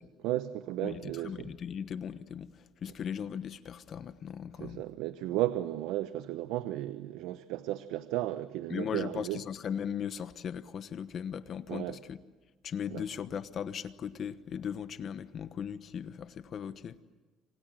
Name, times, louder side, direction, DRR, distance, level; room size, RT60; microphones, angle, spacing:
voice 1, 0.2-1.5 4.6-9.4 11.7-12.0 12.9-13.0, right 14 dB, 80° right, 0.9 m, -34 dB
voice 2, 0.8-4.8 8.7-12.2 12.6-17.0, left 8 dB, 40° left, 1.1 m, -38 dB
28.5 x 25.5 x 7.6 m
cardioid pair, 140°, 0 cm